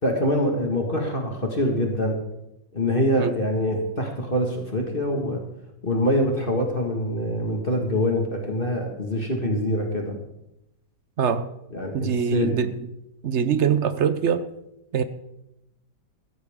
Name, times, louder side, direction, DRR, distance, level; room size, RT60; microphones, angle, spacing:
voice 1, 0.0-2.2 2.7-5.4 5.8-10.1 11.7-12.6, left 1 dB, 30° left, 1 dB, 1.9 m, -24 dB
voice 2, 11.2-11.5 11.9-12.9 13.2-14.5 14.9-15.0, right 7 dB, 60° right, 12 dB, 0.8 m, -23 dB
15.5 x 14.0 x 3.7 m, 0.87 s
omnidirectional pair, 1.9 m